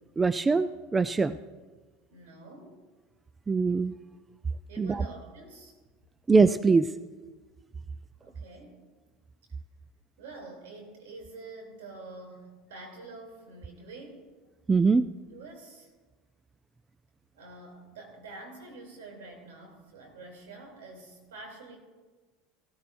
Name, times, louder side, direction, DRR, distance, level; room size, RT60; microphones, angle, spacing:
voice 1, 0.2-1.4 3.5-3.9 4.8-5.0 6.3-6.9 14.7-15.1, right 4 dB, 20° right, 13 dB, 0.4 m, -23 dB
voice 2, 2.1-2.8 4.7-5.7 8.2-8.9 10.2-14.3 15.3-15.9 17.3-21.8, right 3 dB, 80° right, 1 dB, 3.0 m, -47 dB
16.0 x 14.0 x 2.6 m, 1.3 s
hypercardioid pair, 90°, 0 cm